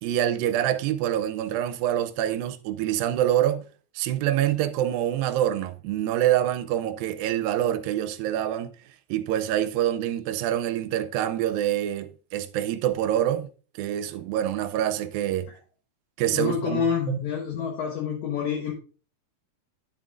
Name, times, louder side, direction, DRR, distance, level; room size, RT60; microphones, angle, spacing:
voice 1, 0.0-3.6 4.0-8.7 9.1-13.5 13.8-15.5 16.2-17.2, right 11 dB, 85° right, 2.4 m, -26 dB
voice 2, 16.3-18.7, left 7 dB, 65° left, 2.2 m, -27 dB
10.0 x 7.5 x 2.4 m
omnidirectional pair, 4.1 m